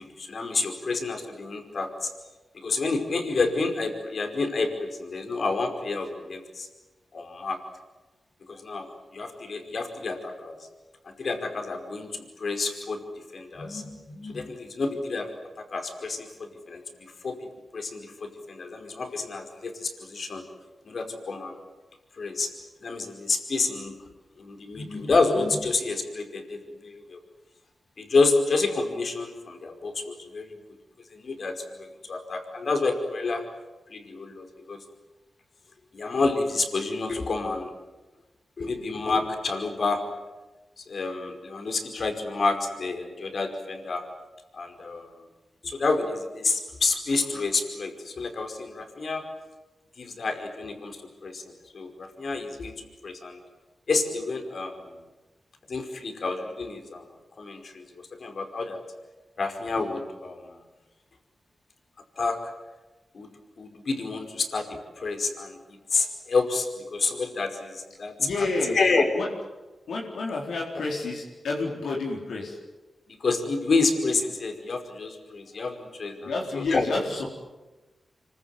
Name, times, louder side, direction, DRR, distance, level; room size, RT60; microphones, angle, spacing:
voice 1, 0.0-2.1 2.5-6.7 7.1-7.6 8.5-8.9 9.1-10.6 11.0-13.0 13.3-15.3 15.6-17.5 17.7-20.4 20.8-21.6 22.2-22.5 22.8-24.0 24.4-27.2 28.0-30.6 31.1-33.4 33.9-34.8 35.9-37.7 38.6-40.0 40.8-44.0 44.5-45.1 45.6-49.2 50.0-51.4 51.7-53.4 53.9-54.9 55.7-57.1 57.4-57.8 58.2-58.8 59.4-60.5 62.2-62.5 63.1-63.3 63.6-68.1 68.7-69.1 73.1-76.8, left 3 dB, 65° left, 4 dB, 5.1 m, -29 dB
voice 2, 68.2-68.8 69.1-69.3 69.9-72.6 76.2-77.3, left 3 dB, 85° left, -2 dB, 4.3 m, -29 dB
26.5 x 24.0 x 9.3 m, 1.1 s
cardioid pair, 45°, 0 cm